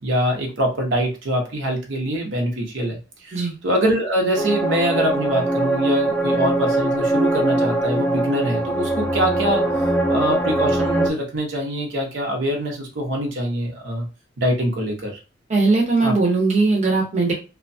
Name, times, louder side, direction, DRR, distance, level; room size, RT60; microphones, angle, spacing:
voice 1, 0.0-9.7 10.1-14.1 14.4-15.2 16.0-16.1, equal, 70° right, 0 dB, 0.8 m, -24 dB
sound 1, 4.4-11.1, right 1 dB, 10° left, 0.3 m, -21 dB
voice 2, 15.5-17.3, right 3 dB, 35° right, 0 dB, 0.7 m, -19 dB
2.7 x 2.2 x 2.6 m, 0.31 s
head